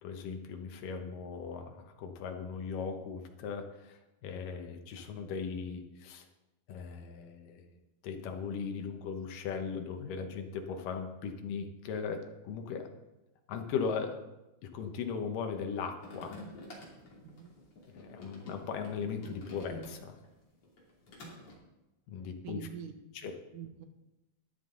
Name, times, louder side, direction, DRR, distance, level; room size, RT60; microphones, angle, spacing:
voice 1, 0.0-6.3 6.7-7.7 8.0-12.9 13.5-14.2 14.6-16.4 17.8-20.2 22.1-22.6 23.2-23.3, left 6 dB, 70° left, 5 dB, 2.6 m, -38 dB
sound 1, 16.0-20.3 20.6-21.5, left 1 dB, 40° left, 3.4 m, -49 dB
voice 2, 17.2-17.6 22.4-22.9 23.2-23.9, right 9 dB, 70° right, 7 dB, 2.4 m, -45 dB
13.0 x 10.5 x 3.9 m, 0.98 s
omnidirectional pair, 4.1 m